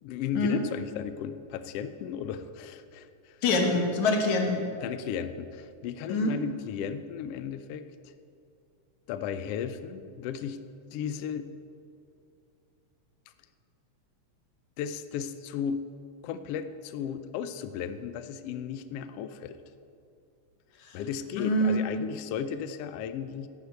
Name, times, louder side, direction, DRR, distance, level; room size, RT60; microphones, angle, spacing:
voice 1, 0.0-3.4 4.8-8.1 9.1-10.6 10.9-11.5 14.8-15.8 16.2-19.6 20.9-23.5, left 8 dB, 90° left, 11 dB, 1.3 m, -35 dB
voice 2, 3.4-4.6 6.1-6.4 20.8-21.0 21.4-21.9, left 2 dB, 70° left, 3 dB, 2.6 m, -25 dB
11.5 x 8.0 x 8.1 m, 2.6 s
omnidirectional pair, 3.5 m